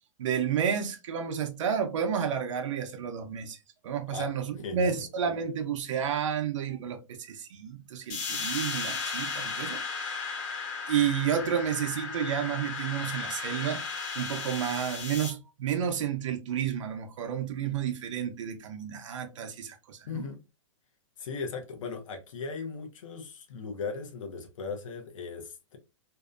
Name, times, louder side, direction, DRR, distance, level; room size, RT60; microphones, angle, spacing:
voice 1, 0.2-3.6 3.8-10.4 10.9-20.2, right 8 dB, 65° right, 0.6 m, -31 dB
voice 2, 4.6-5.0 20.1-20.4 21.2-25.8, left 4 dB, 70° left, 0.6 m, -38 dB
sound 1, 8.1-15.3, left 4 dB, 35° left, 0.6 m, -35 dB
2.7 x 2.1 x 2.3 m
hypercardioid pair, 165°, 17 cm